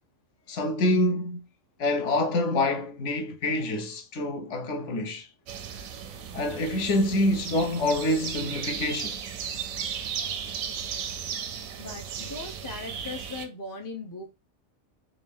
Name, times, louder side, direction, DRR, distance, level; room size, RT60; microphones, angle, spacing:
voice 1, 0.5-1.5 1.8-5.3 6.3-9.2, left 1 dB, 65° left, 1.0 m, -26 dB
sound 1, 5.5-13.5, right 7 dB, 90° right, 1.0 m, -35 dB
voice 2, 11.8-14.3, left 3 dB, 30° left, 0.3 m, -39 dB
3.8 x 2.4 x 3.5 m
omnidirectional pair, 1.4 m